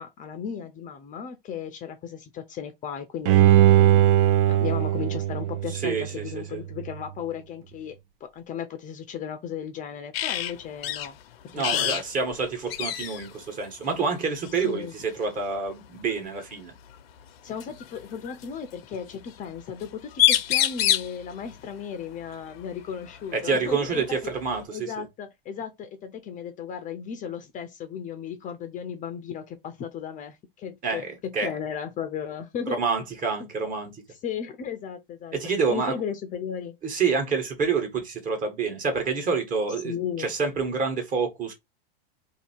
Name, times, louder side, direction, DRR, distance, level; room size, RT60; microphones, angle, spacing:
voice 1, 0.0-4.1 4.5-7.9 8.2-11.2 11.5-12.0 14.6-14.9 17.4-24.0 24.7-32.8 34.1-35.3 35.7-36.8 39.8-40.3, left 8 dB, 25° left, 0.6 m, -35 dB
Bowed string instrument, 3.3-6.4 6.8-6.9, right 12 dB, 50° right, 0.5 m, -20 dB
voice 2, 5.7-6.6 11.5-16.7 23.3-25.1 30.8-31.5 32.7-33.9 35.3-35.9 36.8-41.5, right 5 dB, 30° right, 1.3 m, -28 dB
sound 1, 10.1-10.5 10.8-11.1 11.6-12.0 12.3-12.4 12.7-13.3 14.5-14.7 16.4-16.5 17.6-18.4 19.8-19.9 20.1-21.1 23.1-23.2 23.6-24.6, left 12 dB, 85° left, 0.7 m, -25 dB
2.8 x 2.7 x 4.3 m
supercardioid pair, 125°, 29 cm